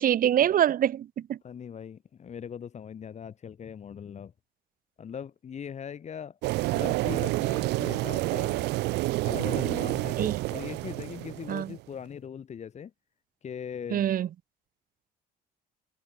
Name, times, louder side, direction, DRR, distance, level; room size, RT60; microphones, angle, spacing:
voice 1, 0.0-1.4 10.2-10.4 11.5-11.7 13.9-14.3, right 10 dB, 55° right, 3.2 m, -25 dB
voice 2, 1.4-4.3 5.0-6.4 6.7-8.7 9.2-12.9 13.4-14.1, left 7 dB, 40° left, 4.8 m, -40 dB
sound 1, 6.4-11.8, right 20 dB, 85° right, 1.8 m, -29 dB
cardioid pair, 110°, 17 cm